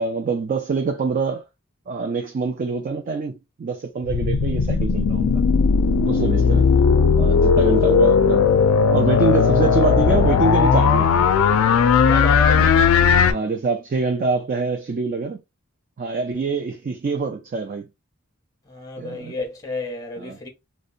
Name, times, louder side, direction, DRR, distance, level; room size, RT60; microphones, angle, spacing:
voice 1, 0.0-1.4 1.9-5.4 6.0-6.7 7.2-8.4 8.9-11.3 12.5-12.7 13.2-15.4 16.0-17.9 19.0-19.3 20.2-20.5, right 4 dB, 40° right, 0.3 m, -25 dB
sound 1, 4.0-13.3, left 5 dB, 80° left, 0.3 m, -17 dB
voice 2, 6.0-6.5 7.4-7.7 12.1-12.7 18.7-20.5, left 3 dB, 15° left, 0.6 m, -32 dB
2.7 x 2.1 x 2.4 m
head